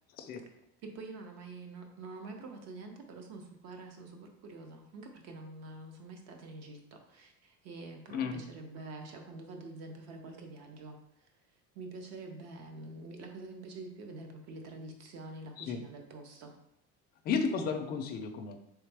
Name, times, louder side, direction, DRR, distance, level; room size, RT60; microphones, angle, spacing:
voice 1, 0.8-11.3 11.7-16.6, right 3 dB, 55° right, 4 dB, 0.7 m, -46 dB
voice 2, 8.1-8.4 15.6-15.8 17.2-18.6, left 5 dB, 30° left, 5 dB, 0.4 m, -33 dB
3.4 x 3.2 x 3.4 m, 0.79 s
cardioid pair, 160°, 31 cm